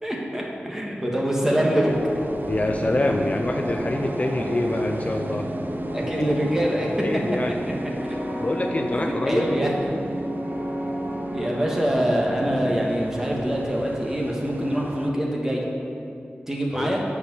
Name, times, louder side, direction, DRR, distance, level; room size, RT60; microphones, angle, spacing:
voice 1, 0.0-1.9 5.9-7.2 7.7-8.2 8.9-9.7 11.3-15.6 16.5-17.0, equal, 10° right, -2 dB, 1.5 m, -25 dB
sound 1, 1.4-12.9, equal, 75° right, 1.7 m, -32 dB
sound 2, 1.8-15.1, right 2 dB, 55° right, 0.5 m, -38 dB
voice 2, 2.5-5.5 6.1-6.3 6.9-7.6 8.4-9.4 16.7-17.0, left 2 dB, 35° left, 3 dB, 0.5 m, -26 dB
9.4 x 4.7 x 6.9 m, 2.7 s
wide cardioid pair, 85°, 4 cm